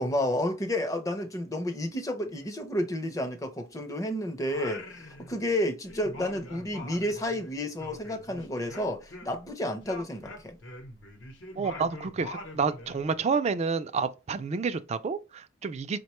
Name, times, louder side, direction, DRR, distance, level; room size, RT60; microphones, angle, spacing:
voice 1, 0.0-10.6, left 1 dB, 15° left, 0.6 m, -31 dB
Singing, 4.4-5.6 5.9-9.5 9.8-13.0, left 1 dB, 70° left, 0.8 m, -44 dB
voice 2, 11.6-16.0, right 5 dB, 35° right, 0.3 m, -29 dB
4.7 x 2.2 x 3.0 m
head